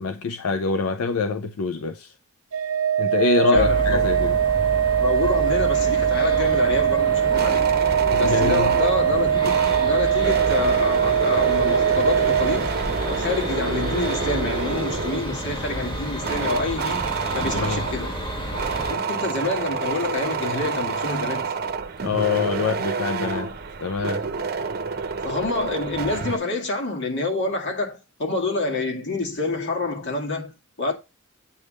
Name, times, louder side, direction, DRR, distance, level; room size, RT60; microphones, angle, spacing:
voice 1, 0.0-2.1 3.0-4.4 8.1-8.7 17.4-17.8 22.0-23.5 23.8-24.2, left 4 dB, 85° left, 0.5 m, -24 dB
Organ, 2.5-13.2, right 9 dB, 80° right, 0.6 m, -22 dB
voice 2, 3.5-4.1 5.0-7.7 8.2-12.8 13.1-18.1 18.9-21.5 25.2-30.9, left 3 dB, 60° left, 2.1 m, -27 dB
sound 1, 3.5-18.9, right 1 dB, 25° left, 1.6 m, -31 dB
sound 2, 7.0-26.4, right 5 dB, 50° right, 0.8 m, -29 dB
8.5 x 3.5 x 6.4 m
head